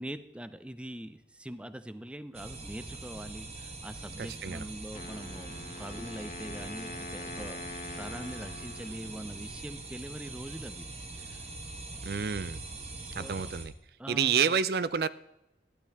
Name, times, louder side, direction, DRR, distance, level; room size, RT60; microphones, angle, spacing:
voice 1, 0.0-10.9 11.2-11.4 13.0-13.5 14.0-14.6, right 1 dB, 5° right, 12 dB, 0.5 m, -43 dB
sound 1, 2.3-13.7, right 3 dB, 35° right, 1.3 m, -43 dB
voice 2, 4.2-4.6 12.0-12.6 13.2-13.7 14.1-15.1, right 6 dB, 60° right, 16 dB, 0.4 m, -29 dB
Wind instrument woodwind instrument, 4.9-9.9, left 3 dB, 40° left, 0.7 m, -44 dB
12.0 x 11.5 x 3.5 m, 0.88 s
head